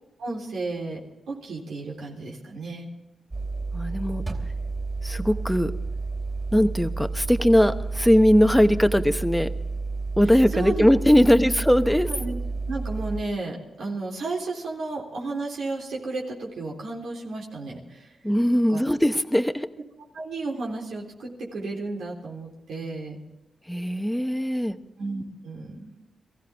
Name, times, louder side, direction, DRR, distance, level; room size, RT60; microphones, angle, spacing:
voice 1, 0.2-1.0 1.3-2.9 10.5-10.9 11.2-11.5 12.1-12.3 12.6-18.1 18.5-18.8 20.1-23.2 25.0-25.9, right 3 dB, 85° right, -2 dB, 3.6 m, -33 dB
sound 1, 3.3-13.2, right 3 dB, 35° right, 3.2 m, -31 dB
voice 2, 3.7-4.2 5.0-5.7 6.5-9.5 10.2-12.1 18.2-19.7 23.7-24.8, equal, 5° left, 8 dB, 1.0 m, -20 dB
23.0 x 15.0 x 3.5 m, 1.0 s
cardioid pair, 85°, 0 cm